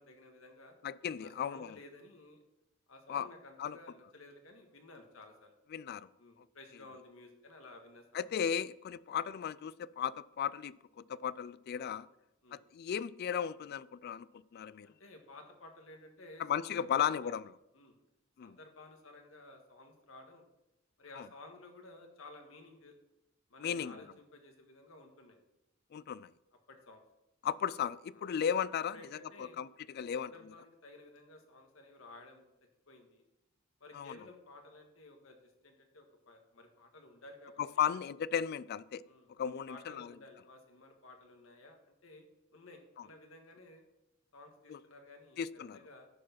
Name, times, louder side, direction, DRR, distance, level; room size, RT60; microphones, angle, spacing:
voice 1, 0.0-0.8 1.2-2.4 2.9-5.5 6.2-8.3 11.8-12.0 12.4-12.6 14.8-17.3 17.7-18.0 18.4-20.4 21.0-22.9 23.5-25.4 26.7-27.0 28.1-28.3 28.9-29.6 30.1-32.5 32.9-33.2 33.8-35.4 35.6-37.9 39.0-39.3 39.7-42.2 42.5-43.8 44.3-45.4 45.7-46.1, left 2 dB, 75° left, 1.6 m, -54 dB
voice 2, 0.8-1.8 3.1-3.3 3.6-3.8 5.7-6.1 8.1-12.1 12.5-14.9 16.4-17.5 18.4-18.6 21.2-21.3 23.6-24.0 25.9-26.3 27.4-30.3 33.9-34.2 37.6-39.0 39.4-40.1 44.7-44.8 45.4-45.8, left 8 dB, 50° left, 0.3 m, -35 dB
11.0 x 4.7 x 5.9 m
head